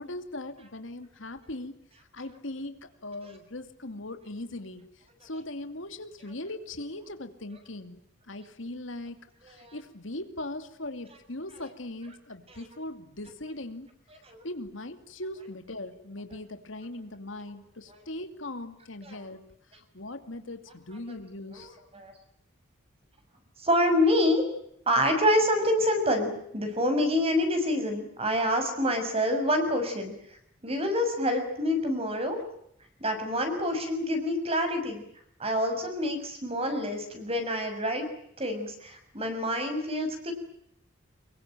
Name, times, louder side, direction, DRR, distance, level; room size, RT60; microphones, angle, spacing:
voice 1, 0.0-1.8 2.1-4.9 5.2-13.9 14.4-19.5 19.7-21.8, left 1 dB, 70° left, 8 dB, 2.5 m, -40 dB
voice 2, 23.6-24.4 24.9-30.1 30.6-32.4 33.0-35.0 35.4-38.0 38.4-40.3, left 1 dB, 30° right, 6 dB, 6.5 m, -27 dB
25.0 x 23.0 x 9.1 m, 0.74 s
head